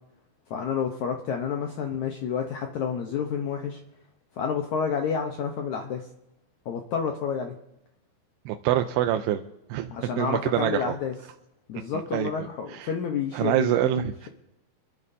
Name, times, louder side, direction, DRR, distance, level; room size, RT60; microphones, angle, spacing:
voice 1, 0.5-3.8 4.4-6.1 6.6-7.5 9.9-11.1 11.7-14.3, left 7 dB, 90° left, 3 dB, 1.6 m, -30 dB
voice 2, 8.5-9.4 9.7-9.9 10.2-10.9 12.1-12.9 13.3-14.3, right 12 dB, 85° right, 7 dB, 2.7 m, -26 dB
26.0 x 12.5 x 2.7 m, 0.88 s
omnidirectional pair, 4.7 m